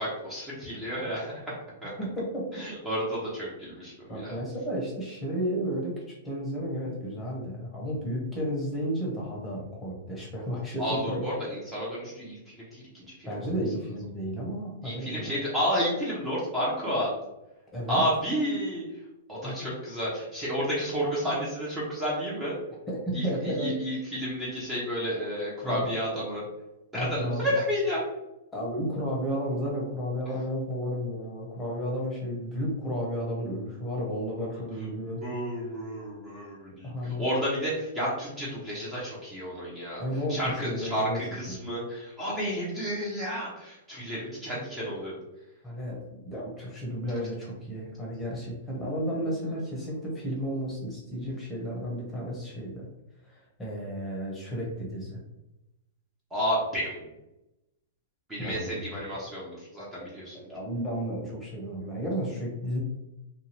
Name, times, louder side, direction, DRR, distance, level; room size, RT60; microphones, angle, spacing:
voice 1, 0.0-1.3 1.8-1.9 2.5-4.4 10.8-13.5 14.8-17.1 17.9-18.8 19.3-22.5 23.1-26.4 26.9-28.0 34.5-34.6 35.2-40.0 40.3-45.2 48.8-49.6 56.3-57.0 58.3-60.5, equal, 10° right, -7 dB, 0.8 m, -31 dB
voice 2, 2.0-2.5 4.1-5.9 6.2-11.3 13.2-15.4 17.7-18.0 19.4-19.6 22.9-23.7 25.6-25.9 26.9-27.5 28.5-35.2 36.8-37.3 40.0-41.2 41.5-41.6 45.6-52.9 53.6-55.2 58.4-58.8 60.5-62.8, equal, 10° left, -4 dB, 1.0 m, -32 dB
2.7 x 2.3 x 3.0 m, 0.93 s
hypercardioid pair, 135°, 0 cm